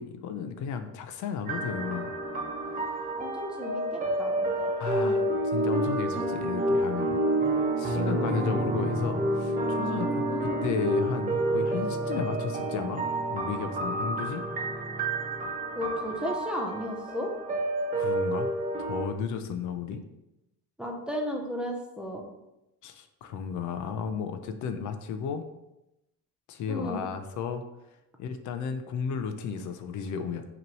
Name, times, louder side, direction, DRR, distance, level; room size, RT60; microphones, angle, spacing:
voice 1, 0.0-2.1 4.8-7.2 7.8-13.0 13.3-14.4 17.9-18.5 18.8-20.0 22.8-25.4 26.5-27.6 28.2-30.5, left 6 dB, 60° left, 8 dB, 0.6 m, -34 dB
sound 1, 1.5-19.1, right 1 dB, 25° right, 0.9 m, -29 dB
voice 2, 3.2-5.2 7.9-8.9 10.3-10.6 15.7-17.3 20.8-22.2 26.7-27.0, left 1 dB, 5° right, 0 dB, 0.6 m, -35 dB
5.9 x 3.1 x 5.2 m, 0.91 s
cardioid pair, 160°, 33 cm